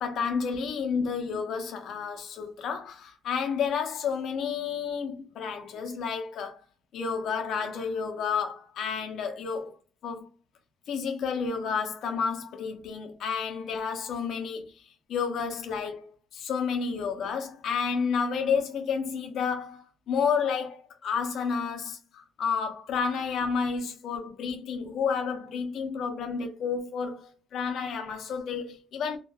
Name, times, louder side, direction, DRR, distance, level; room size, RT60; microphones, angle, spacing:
voice 1, 0.0-6.6 6.9-9.7 10.0-10.3 10.9-14.7 15.1-29.2, left 6 dB, 70° left, 0.5 m, -30 dB
2.2 x 2.1 x 3.2 m
cardioid pair, 90°, 0 cm